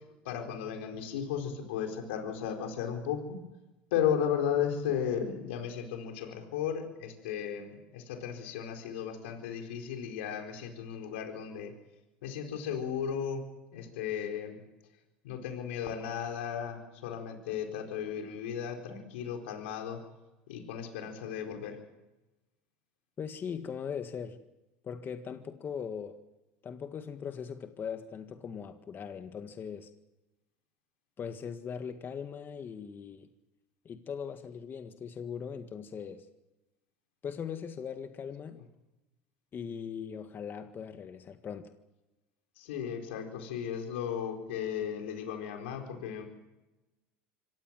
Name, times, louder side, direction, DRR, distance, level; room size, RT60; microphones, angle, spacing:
voice 1, 0.2-3.4 3.9-11.7 12.2-13.4 13.7-14.6 15.2-20.0 20.5-21.8 42.6-46.3, left 8 dB, 85° left, 4 dB, 4.4 m, -35 dB
voice 2, 23.2-24.4 24.8-26.2 26.6-29.9 31.2-33.3 33.8-36.2 37.2-38.6 39.5-41.7, left 7 dB, 35° left, 8 dB, 1.7 m, -40 dB
25.5 x 17.0 x 7.7 m, 1.0 s
supercardioid pair, 95°, 6 cm